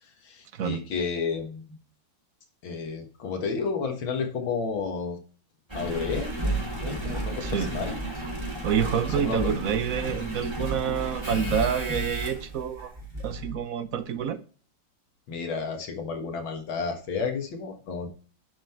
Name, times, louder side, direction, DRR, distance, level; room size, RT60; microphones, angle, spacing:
voice 1, 0.0-1.6 2.6-5.2 5.7-6.4 6.8-8.0 9.1-9.5 15.3-18.1, left 5 dB, 85° left, 2.4 m, -31 dB
Engine, 5.7-13.6 14.2-14.3, right 2 dB, 15° right, 2.7 m, -32 dB
voice 2, 8.6-12.9 13.2-14.4, right 7 dB, 55° right, 1.0 m, -28 dB
11.5 x 5.7 x 4.5 m
omnidirectional pair, 2.1 m